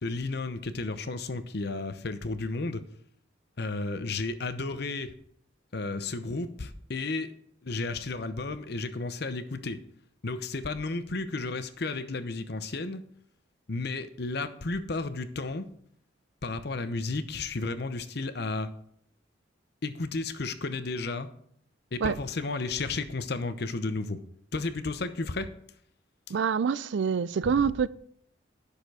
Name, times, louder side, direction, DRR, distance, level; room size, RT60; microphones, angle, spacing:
voice 1, 0.0-2.8 3.6-5.1 5.7-7.3 7.6-9.8 10.2-13.0 13.7-15.7 16.4-18.7 19.8-21.3 21.9-24.2 24.5-25.5 27.4-27.5, left 3 dB, 55° left, 0.8 m, -33 dB
voice 2, 26.3-27.9, right 6 dB, 70° right, 0.4 m, -26 dB
10.5 x 6.7 x 4.8 m
head